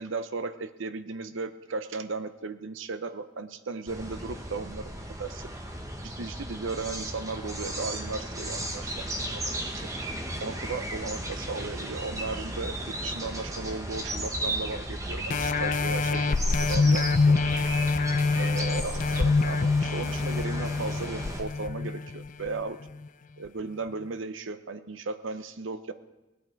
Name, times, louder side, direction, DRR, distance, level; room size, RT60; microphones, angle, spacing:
voice 1, 0.0-4.9 5.2-5.5 6.0-9.9 10.4-17.9 18.3-22.8 23.4-25.9, right 3 dB, 70° right, 11 dB, 0.7 m, -36 dB
sound 1, 3.9-21.4, right 1 dB, 15° right, 1.2 m, -35 dB
sound 2, 15.3-22.5 23.0-23.1, left 4 dB, 40° left, 0.4 m, -25 dB
17.5 x 11.0 x 4.6 m, 1.0 s
head